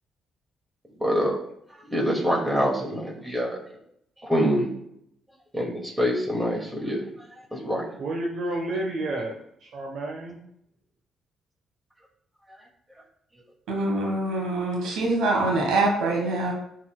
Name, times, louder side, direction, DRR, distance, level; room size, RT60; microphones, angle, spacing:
voice 1, 1.0-1.4 1.9-3.6 4.2-4.7 5.5-7.0 7.5-7.8 13.8-13.9, equal, 10° right, -1 dB, 2.0 m, -25 dB
voice 2, 8.0-10.4, right 2 dB, 65° right, -1 dB, 1.0 m, -30 dB
voice 3, 13.7-16.5, right 2 dB, 90° right, 0 dB, 1.5 m, -24 dB
12.0 x 4.1 x 2.2 m, 0.73 s
cardioid pair, 90°, 0 cm